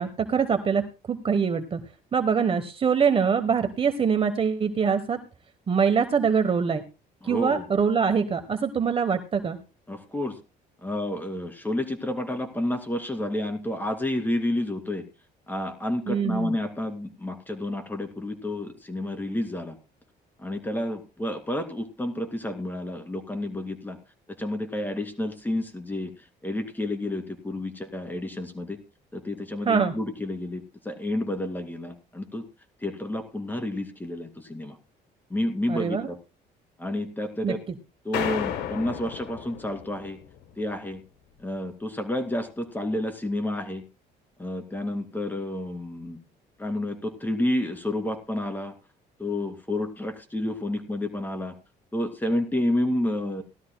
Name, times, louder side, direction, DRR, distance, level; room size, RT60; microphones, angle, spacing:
voice 1, 0.0-1.8 2.1-5.2 5.7-6.8 7.3-9.6 16.1-16.6 29.7-29.9 35.7-36.1 37.4-37.6, right 6 dB, 35° right, 8 dB, 1.1 m, -24 dB
voice 2, 7.2-7.6 9.9-10.4 10.8-15.0 15.5-19.8 20.4-24.0 24.3-26.1 26.4-28.8 29.1-32.4 32.8-34.8 35.3-36.2 36.8-37.6 38.0-40.2 40.6-41.0 41.4-43.8 44.4-46.2 46.6-48.7 49.2-51.5 51.9-53.4, left 1 dB, 10° left, 6 dB, 2.5 m, -30 dB
sound 1, 38.1-40.5, left 9 dB, 85° left, 1.3 m, -33 dB
18.5 x 12.5 x 2.2 m, 0.30 s
cardioid pair, 110°, 17 cm